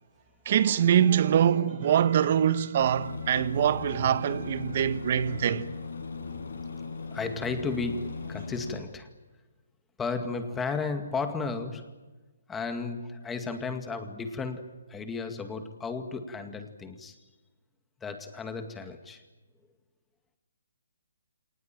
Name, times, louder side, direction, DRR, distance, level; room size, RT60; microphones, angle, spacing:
voice 1, 0.5-5.6, right 9 dB, 45° right, 1.3 m, -24 dB
Aircraft, 2.8-8.8, left 5 dB, 75° left, 7.5 m, -38 dB
voice 2, 7.1-9.1 10.0-11.9 12.5-17.2 18.0-19.2, left 4 dB, 10° left, 2.1 m, -34 dB
26.5 x 19.5 x 9.2 m
hypercardioid pair, 160°, 0 cm